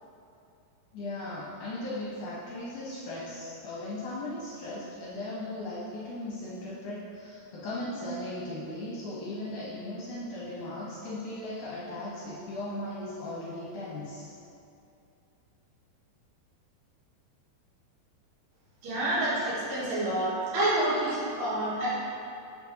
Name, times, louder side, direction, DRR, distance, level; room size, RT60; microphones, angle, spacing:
voice 1, 0.9-14.3, left 1 dB, 70° left, -7 dB, 2.0 m, -37 dB
voice 2, 18.8-21.9, right 1 dB, 90° right, -9 dB, 3.9 m, -28 dB
9.7 x 5.8 x 2.9 m, 2.6 s
omnidirectional pair, 4.6 m